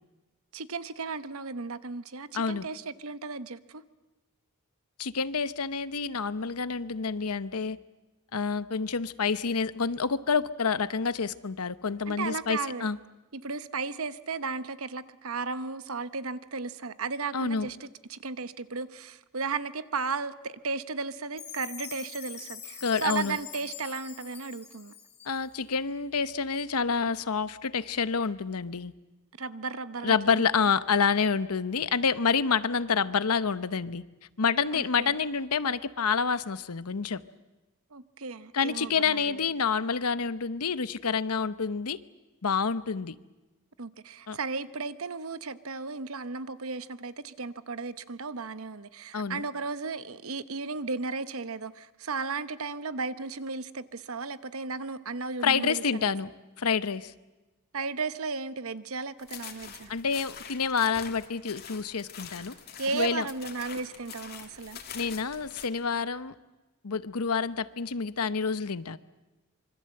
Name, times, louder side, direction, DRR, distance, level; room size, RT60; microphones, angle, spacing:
voice 1, 0.5-3.8 12.1-12.9 13.3-24.9 29.4-30.7 34.7-35.1 37.9-39.4 43.8-56.1 57.7-59.9 62.8-64.8, right 4 dB, 75° right, 13 dB, 1.0 m, -35 dB
voice 2, 2.3-2.7 5.0-7.8 8.3-13.0 17.3-17.7 22.8-23.4 25.3-28.9 30.0-34.0 34.4-37.2 38.5-42.0 42.4-43.2 44.3-44.4 49.1-49.4 55.4-56.3 56.6-57.1 59.9-62.5 62.9-63.3 64.9-66.3 66.8-69.0, left 5 dB, 90° left, 14 dB, 0.9 m, -28 dB
Chime, 21.4-25.6, left 8 dB, 30° left, 2.9 m, -43 dB
sound 1, 59.2-65.7, left 7 dB, 45° left, 2.5 m, -45 dB
26.0 x 24.0 x 7.7 m, 1.1 s
head